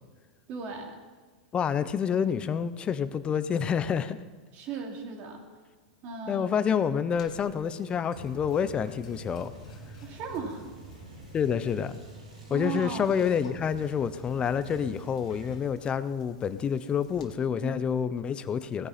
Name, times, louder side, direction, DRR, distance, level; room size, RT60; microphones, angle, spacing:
voice 1, 0.5-0.9 4.5-5.4 6.0-6.5 10.0-10.7 12.5-13.1 17.6-17.8, right 5 dB, 45° right, 1 dB, 2.9 m, -36 dB
voice 2, 1.5-4.2 6.3-9.5 11.3-12.0 12.5-18.9, left 7 dB, 25° left, 14 dB, 0.8 m, -28 dB
sound 1, 7.2-17.2, left 3 dB, 80° left, 2.2 m, -56 dB
sound 2, 8.1-15.6, right 2 dB, 90° right, 4.0 m, -47 dB
17.5 x 9.9 x 4.3 m, 1.4 s
hypercardioid pair, 100°, 4 cm